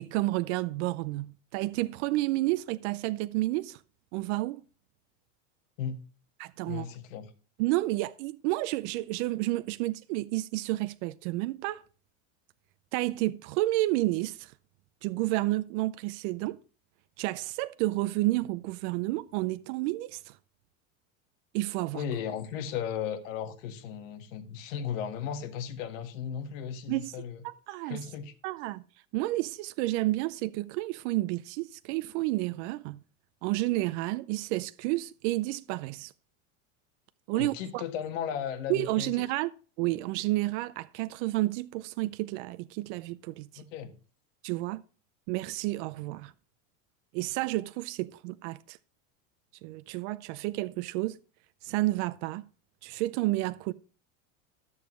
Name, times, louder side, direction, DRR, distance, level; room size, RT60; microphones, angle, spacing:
voice 1, 0.0-3.8 4.1-4.6 6.4-6.9 7.6-11.8 12.9-14.5 15.0-16.6 17.2-20.3 21.5-22.0 26.9-27.1 27.4-28.0 28.4-28.8 29.1-33.0 33.4-36.1 37.3-37.8 38.7-39.5 39.8-43.6 44.4-44.8 45.3-46.3 47.1-48.8 49.6-51.2 51.6-52.4 52.8-53.7, right 18 dB, 60° right, 0.6 m, -30 dB
voice 2, 6.6-7.3 21.9-27.4 27.8-28.3 37.3-39.1 43.6-43.9, left 8 dB, 70° left, 1.7 m, -36 dB
12.5 x 7.1 x 3.1 m
supercardioid pair, 135°, 40 cm